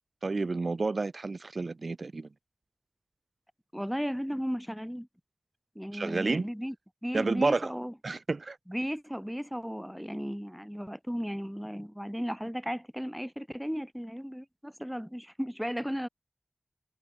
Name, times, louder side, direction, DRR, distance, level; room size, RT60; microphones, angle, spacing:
voice 1, 0.2-2.3 5.9-6.5 7.1-7.7 8.0-8.6, right 3 dB, 70° right, 3.3 m, -30 dB
voice 2, 3.7-5.1 5.7-6.7 7.0-7.9 8.7-16.1, equal, ahead, 4.8 m, -35 dB
cardioid pair, 45°, 0 cm